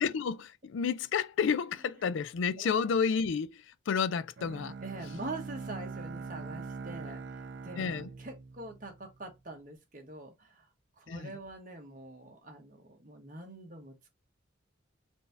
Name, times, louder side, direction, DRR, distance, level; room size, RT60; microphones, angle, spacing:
voice 1, 0.0-4.8 7.8-8.1 11.1-11.3, left 6 dB, 70° left, 0.4 m, -31 dB
Bowed string instrument, 4.4-9.4, right 4 dB, 55° right, 0.4 m, -43 dB
voice 2, 4.8-7.9 8.2-10.7 11.0-14.2, right 2 dB, 40° right, 1.1 m, -44 dB
4.1 x 2.7 x 3.3 m
head